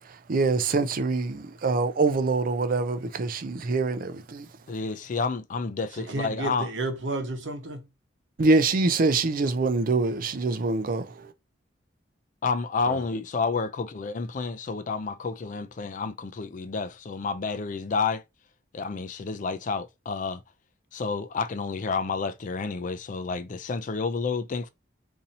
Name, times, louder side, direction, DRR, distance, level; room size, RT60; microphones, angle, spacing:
voice 1, 0.3-4.5 8.4-11.3, right 3 dB, 50° right, 0.4 m, -24 dB
voice 2, 4.7-6.7 12.4-18.2 18.7-20.4 20.9-24.7, left 4 dB, 45° left, 0.4 m, -30 dB
voice 3, 5.9-7.8 12.8-13.0, right 2 dB, 75° right, 0.9 m, -32 dB
2.7 x 2.7 x 4.0 m
head